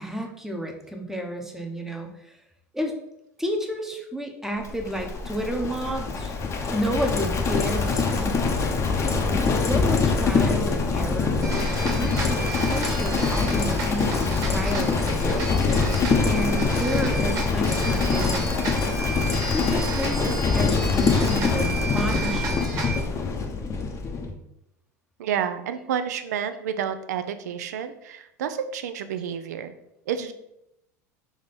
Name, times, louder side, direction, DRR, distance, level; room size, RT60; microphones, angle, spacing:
voice 1, 0.0-2.3 2.7-2.9 3.4-6.3 6.7-8.4 9.1-15.7 16.2-18.8 19.5-22.8, equal, 5° right, 3 dB, 0.8 m, -31 dB
Livestock farm animals working animals, 4.6-24.3, left 4 dB, 35° left, 0.7 m, -24 dB
sound 1, 11.4-23.0, right 3 dB, 40° right, 1.6 m, -33 dB
voice 2, 25.2-29.7 30.1-30.3, right 8 dB, 80° right, 10 dB, 0.4 m, -30 dB
3.6 x 3.1 x 4.0 m, 0.84 s
hypercardioid pair, 85°, 9 cm